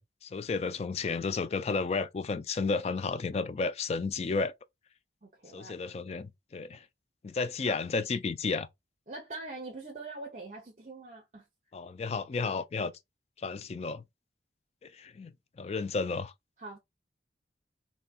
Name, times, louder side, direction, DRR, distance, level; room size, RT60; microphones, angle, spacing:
voice 1, 0.0-4.5 5.5-6.8 7.2-8.7 11.7-12.9 13.4-14.0 14.8-16.3, left 4 dB, 35° left, 0.3 m, -32 dB
voice 2, 5.2-5.8 7.6-7.8 9.1-11.4 16.6-16.8, right 2 dB, 45° right, 0.8 m, -43 dB
4.0 x 2.7 x 2.3 m
head